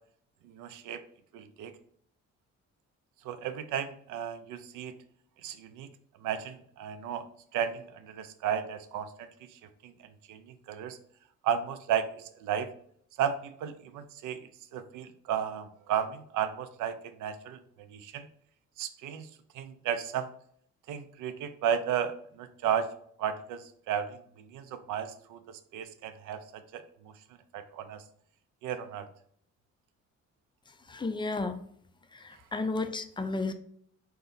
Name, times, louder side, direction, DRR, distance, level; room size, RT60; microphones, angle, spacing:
voice 1, 0.4-1.0 1.3-1.8 3.2-4.9 5.4-5.9 6.2-7.3 7.5-9.9 10.3-11.0 11.4-12.7 13.2-17.6 17.9-18.3 18.8-19.3 19.5-20.3 20.9-22.9 23.2-27.1 27.5-28.0 28.6-29.1, right 8 dB, 85° right, 10 dB, 0.5 m, -34 dB
voice 2, 30.9-31.6 32.1-33.5, left 3 dB, 15° left, 8 dB, 0.3 m, -33 dB
3.8 x 2.3 x 3.8 m, 0.63 s
cardioid pair, 90°, 30 cm